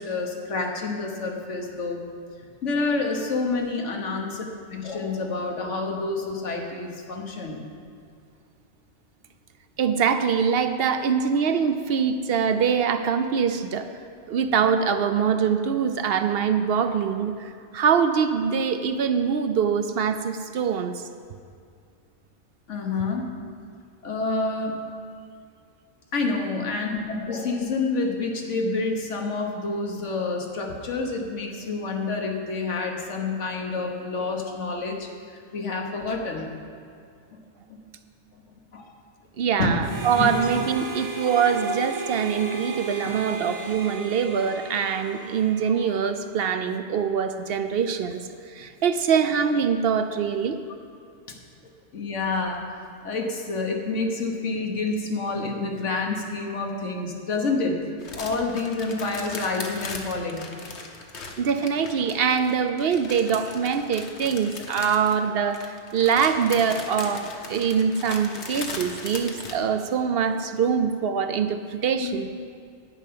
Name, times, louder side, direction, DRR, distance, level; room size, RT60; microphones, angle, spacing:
voice 1, 0.0-2.0 2.6-7.6 22.7-23.3 24.0-24.7 26.1-36.5 38.7-38.8 39.6-39.7 40.2-40.3 45.7-45.8 51.9-52.6 53.0-57.7 58.2-60.4 72.0-72.2, left 3 dB, 90° left, 2 dB, 1.6 m, -28 dB
voice 2, 9.8-13.9 14.3-21.0 39.4-50.6 61.4-72.3, right 6 dB, 60° right, 9 dB, 0.7 m, -24 dB
Harmonica, 39.8-46.2, right 3 dB, 80° right, 1.5 m, -35 dB
sound 1, 58.0-69.5, left 4 dB, 70° left, 1.3 m, -38 dB
10.5 x 5.7 x 8.6 m, 2.3 s
omnidirectional pair, 1.2 m